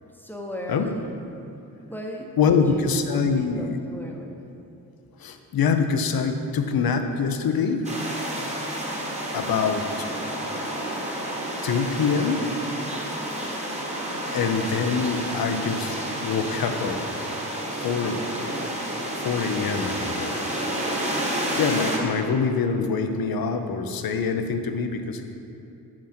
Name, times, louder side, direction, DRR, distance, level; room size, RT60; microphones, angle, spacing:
voice 1, 0.2-0.9 1.9-3.0 3.2-4.4, left 1 dB, 5° left, 0 dB, 0.9 m, -36 dB
voice 2, 2.4-3.8 5.2-7.9 9.3-10.1 11.6-12.5 14.3-16.0 16.2-17.0 17.5-18.2 19.2-20.5 21.6-25.2, left 5 dB, 70° left, 6 dB, 0.6 m, -25 dB
sound 1, 7.8-22.0, right 1 dB, 15° right, 1.3 m, -30 dB
6.2 x 5.9 x 4.3 m, 2.8 s
cardioid pair, 65°, 37 cm